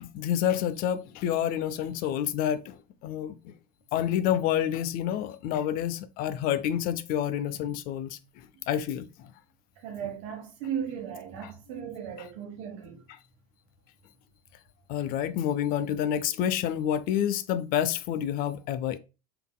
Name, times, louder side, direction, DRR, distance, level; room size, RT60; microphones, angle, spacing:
voice 1, 0.0-3.5 3.9-8.2 8.7-9.3 10.0-10.1 11.4-11.5 12.2-12.3 13.1-13.2 14.9-19.0, left 10 dB, 50° left, 0.5 m, -28 dB
voice 2, 9.8-13.0, right 8 dB, 65° right, 1.1 m, -36 dB
3.8 x 3.5 x 2.2 m
hypercardioid pair, 75°, 19 cm